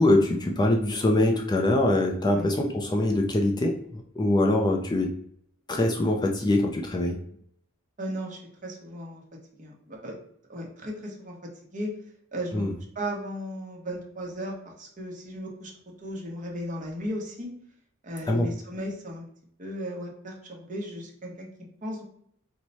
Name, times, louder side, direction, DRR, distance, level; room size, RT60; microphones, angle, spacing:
voice 1, 0.0-5.1 5.7-7.2 12.5-12.7 18.3-18.5, left 1 dB, 20° left, 2 dB, 0.4 m, -23 dB
voice 2, 8.0-9.2 9.6-10.1 10.5-11.3 11.7-11.9 12.3-12.7 12.9-15.7 16.0-17.5 18.0-19.3 19.6-21.5 21.8-22.0, equal, 40° right, 0 dB, 1.0 m, -35 dB
4.6 x 2.2 x 4.0 m, 0.66 s
head